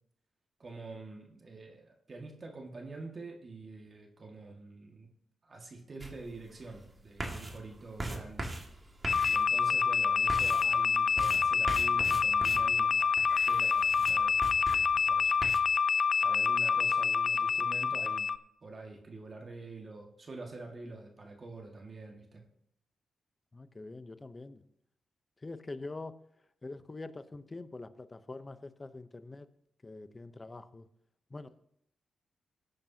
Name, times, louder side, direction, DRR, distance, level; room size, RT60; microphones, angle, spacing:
voice 1, 0.6-5.1 5.4-8.5 9.2-15.4 16.2-18.3 18.6-22.4, right 3 dB, 45° right, 1 dB, 1.9 m, -46 dB
sound 1, 6.0-15.6, right 2 dB, 30° right, 2.0 m, -42 dB
sound 2, 9.1-18.4, left 6 dB, 55° left, 0.4 m, -27 dB
voice 2, 23.5-24.6 25.4-26.2 26.6-29.5 29.8-30.9 31.3-31.5, left 2 dB, 30° left, 12 dB, 0.8 m, -44 dB
16.5 x 9.1 x 2.9 m, 0.73 s
cardioid pair, 60°, 0 cm